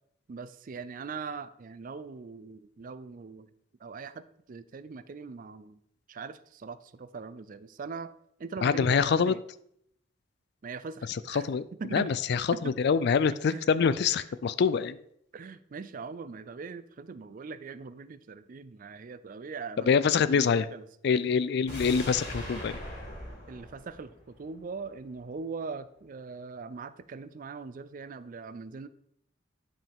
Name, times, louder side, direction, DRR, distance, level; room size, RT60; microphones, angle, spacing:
voice 1, 0.3-3.5 3.8-5.8 6.1-8.1 8.4-9.4 10.6-12.1 12.5-12.8 13.4-13.7 14.2-14.3 15.3-20.9 23.5-28.9, right 4 dB, 45° right, 14 dB, 0.4 m, -41 dB
voice 2, 8.6-9.3 11.3-11.6 11.9-12.4 12.8-15.0 19.9-20.7 21.0-22.8, left 6 dB, 60° left, 16 dB, 0.4 m, -25 dB
sound 1, 21.7-24.8 25.1-25.2, equal, 35° left, 3.3 m, -41 dB
10.0 x 5.5 x 3.5 m, 0.72 s
head